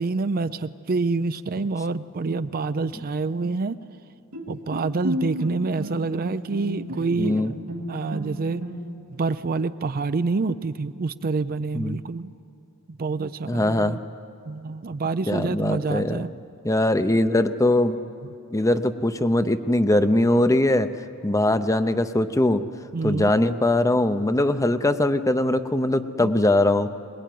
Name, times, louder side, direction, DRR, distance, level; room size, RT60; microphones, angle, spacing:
voice 1, 0.0-3.8 4.5-7.6 7.9-8.6 9.1-12.3 12.9-14.0 14.5-16.3 22.9-23.3, right 3 dB, 40° right, 13 dB, 0.5 m, -27 dB
Bowed string instrument, 4.3-9.2, equal, 90° right, 2.4 m, -33 dB
voice 2, 7.2-7.5 11.7-12.0 13.5-14.0 15.3-16.2 16.6-18.0 18.5-20.9 21.2-22.6 23.0-26.9, left 1 dB, 15° left, 11 dB, 0.7 m, -21 dB
22.0 x 20.5 x 9.3 m, 2.6 s
head